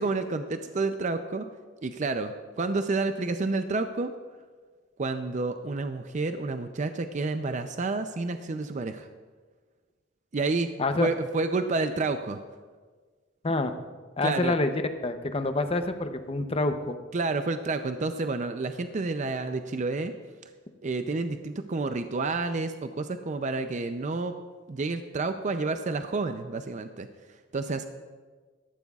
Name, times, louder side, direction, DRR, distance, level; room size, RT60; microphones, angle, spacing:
voice 1, 0.0-1.5 1.8-4.1 5.0-9.1 10.3-10.7 11.0-12.4 14.2-14.5 17.1-20.1 20.8-24.3 24.7-27.1 27.5-27.9, right 3 dB, 40° right, 8 dB, 0.5 m, -29 dB
voice 2, 14.2-14.7 15.0-17.0, left 2 dB, 30° left, 8 dB, 0.7 m, -27 dB
18.0 x 13.5 x 2.4 m, 1.4 s
head